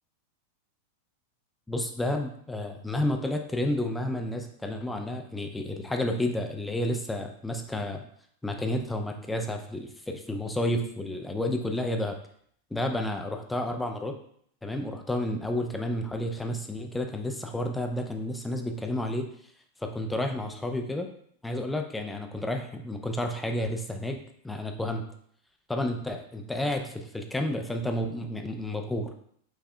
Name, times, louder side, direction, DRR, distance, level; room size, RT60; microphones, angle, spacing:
voice 1, 1.7-8.1 8.4-12.2 12.7-14.2 14.6-19.3 19.8-21.1 21.4-25.0 25.7-29.3, left 1 dB, 5° left, 4 dB, 0.5 m, -31 dB
5.3 x 3.6 x 2.2 m, 0.64 s
figure-of-eight pair, 90°, 0 cm